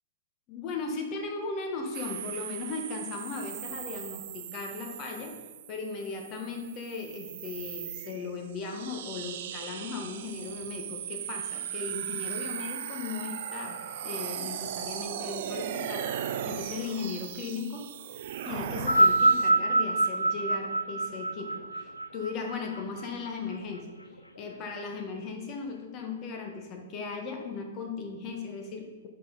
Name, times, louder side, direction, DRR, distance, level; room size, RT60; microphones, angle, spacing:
voice 1, 0.5-5.3 5.7-17.9 18.4-23.9 24.4-29.1, left 4 dB, 30° left, 3 dB, 1.2 m, -37 dB
sound 1, 1.9-19.5, right 10 dB, 50° right, 0.5 m, -38 dB
sound 2, 18.7-23.3 24.2-24.3, right 2 dB, 85° left, 0.5 m, -25 dB
10.0 x 3.9 x 4.0 m, 1.3 s
figure-of-eight pair, 105°, 0 cm